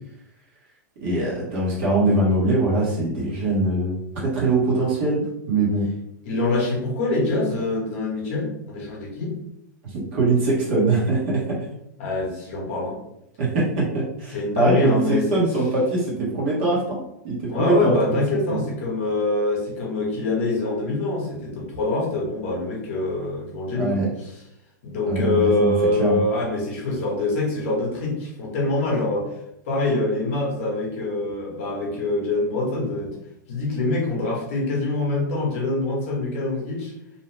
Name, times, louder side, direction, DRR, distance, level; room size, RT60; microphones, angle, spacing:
voice 1, 1.0-4.0 4.2-5.9 9.8-11.6 13.4-18.2 18.5-18.7 23.7-24.1 25.1-25.7 26.0-26.2, right 2 dB, 40° right, -5 dB, 1.0 m, -22 dB
voice 2, 6.2-9.4 12.0-13.0 14.3-15.5 17.5-23.9 24.2-24.3 24.8-29.3 29.7-33.1 33.5-36.9, left 2 dB, 40° left, -3 dB, 0.9 m, -24 dB
2.7 x 2.1 x 3.2 m, 0.80 s
supercardioid pair, 170°, 10 cm